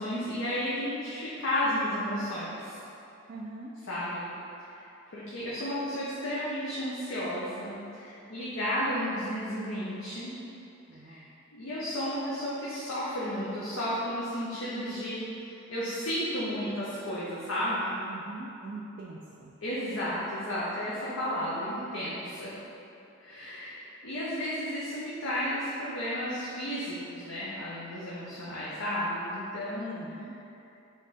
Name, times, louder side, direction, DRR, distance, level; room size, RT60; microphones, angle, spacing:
voice 1, 0.0-2.8 3.9-4.2 4.7-4.8 5.1-10.3 11.0-11.2 11.5-15.3 15.7-17.9 19.6-22.5 23.2-30.3, equal, 70° left, -9 dB, 0.8 m, -33 dB
voice 2, 3.3-3.7 10.9-11.3 18.1-19.5 29.9-30.3, right 3 dB, 45° right, -3 dB, 0.3 m, -43 dB
3.5 x 3.5 x 4.1 m, 2.8 s
head